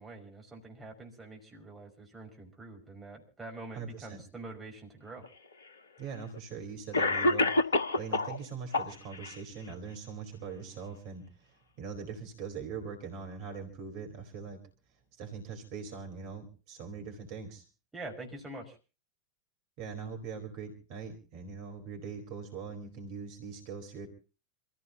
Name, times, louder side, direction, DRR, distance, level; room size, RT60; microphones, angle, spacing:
voice 1, 0.0-5.2 17.9-18.8, right 2 dB, 10° right, 0 dB, 5.5 m, -45 dB
voice 2, 3.7-4.2 6.0-14.6 15.1-17.6 19.8-24.1, right 5 dB, 45° right, 4 dB, 4.3 m, -42 dB
Cough, 5.2-5.3 6.3-6.4 6.9-8.4 8.7-9.4, left 2 dB, 65° left, 1.3 m, -27 dB
27.5 x 15.5 x 2.9 m, 0.35 s
figure-of-eight pair, 90°, 0 cm